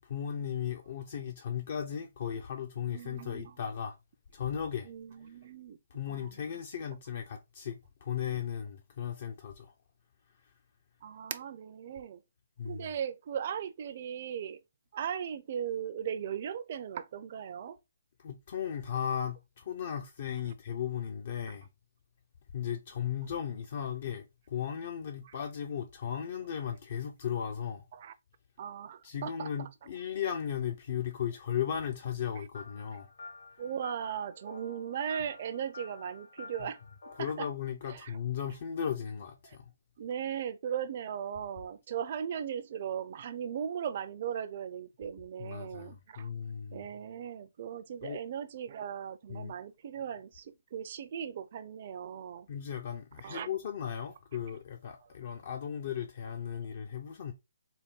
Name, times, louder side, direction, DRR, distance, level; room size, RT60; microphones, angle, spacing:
voice 1, 0.0-4.0 4.3-4.9 5.9-9.7 10.4-10.5 12.6-12.9 18.2-21.7 22.5-27.9 29.0-33.1 36.6-36.7 37.2-39.6 45.4-46.8 48.0-48.2 49.3-49.5 52.5-57.3, left 8 dB, 45° left, 0.5 m, -36 dB
voice 2, 2.9-3.6 4.8-5.8 6.1-6.3 11.0-12.2 12.6-14.6 14.9-17.8 25.2-25.3 27.9-28.1 28.6-29.7 33.6-36.8 37.2-37.5 37.9-38.2 40.0-46.3 46.7-52.5 53.2-53.5 55.0-55.1, right 8 dB, 40° right, 0.4 m, -38 dB
sound 1, 32.5-37.3, left 3 dB, 70° left, 1.6 m, -50 dB
4.0 x 2.2 x 3.6 m
hypercardioid pair, 160°, 0 cm